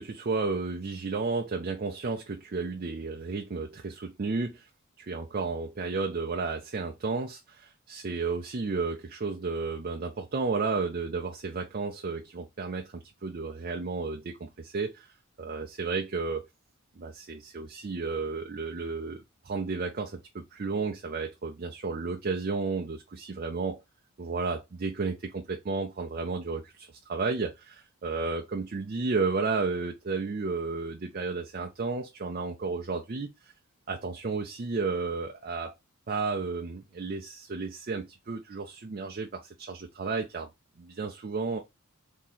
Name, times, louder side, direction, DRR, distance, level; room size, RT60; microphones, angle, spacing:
voice 1, 0.0-4.7 5.0-16.5 17.0-23.8 24.2-33.5 33.9-35.7 36.1-40.5 40.8-41.6, right 4 dB, 40° right, 0.5 m, -32 dB
3.6 x 2.8 x 4.0 m
head